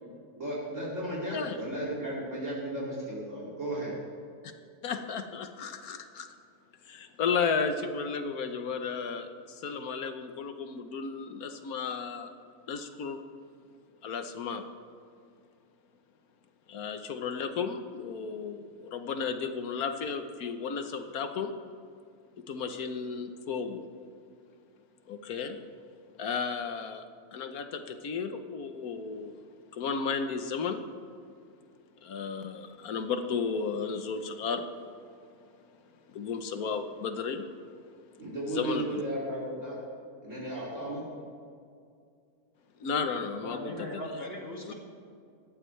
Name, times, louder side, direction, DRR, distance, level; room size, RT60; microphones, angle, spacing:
voice 1, 0.0-3.9 38.2-39.7 40.2-41.1, right 1 dB, 50° right, -6 dB, 3.1 m, -35 dB
voice 2, 4.8-6.3 6.8-12.3 12.7-13.2 14.0-14.7 16.7-21.5 22.5-23.8 25.1-25.6 26.2-27.1 27.3-29.4 29.7-30.8 32.0-34.7 36.1-37.4 38.5-39.0 42.8-44.2 44.7-44.8, left 5 dB, 70° left, 8 dB, 1.5 m, -33 dB
voice 3, 43.4-44.7, equal, 40° left, -1 dB, 2.7 m, -39 dB
18.5 x 14.5 x 3.3 m, 2.3 s
omnidirectional pair, 1.6 m